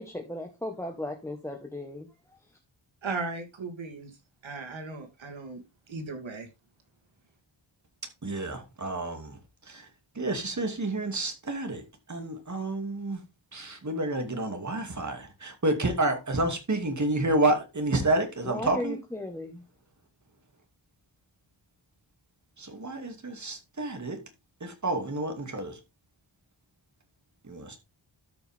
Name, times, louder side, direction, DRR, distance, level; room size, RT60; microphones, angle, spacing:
voice 1, 0.0-2.1 18.4-19.6, left 1 dB, 5° left, 1.4 m, -36 dB
voice 2, 3.0-4.1 4.4-5.6 5.9-6.5, right 3 dB, 85° right, 2.8 m, -36 dB
voice 3, 8.2-9.4 9.7-9.8 10.2-11.8 12.1-13.2 13.5-19.0 22.6-24.2 24.6-25.8 27.4-27.8, right 2 dB, 40° right, 2.6 m, -29 dB
13.0 x 5.8 x 3.6 m
wide cardioid pair, 110°, 45 cm